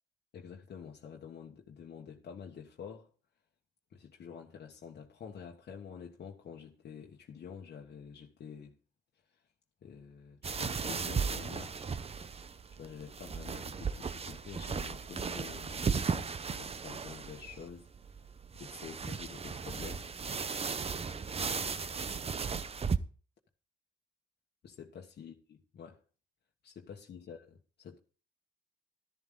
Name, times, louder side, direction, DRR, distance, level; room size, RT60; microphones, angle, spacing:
voice 1, 0.3-3.1 3.9-8.7 9.8-11.9 12.8-17.9 18.5-20.1 21.6-21.8 24.6-26.0 26.6-28.0, left 7 dB, 55° left, 1.4 m, -48 dB
sound 1, 10.4-23.0, right 5 dB, 30° right, 0.7 m, -36 dB
12.5 x 11.0 x 3.9 m
cardioid pair, 90°, 20 cm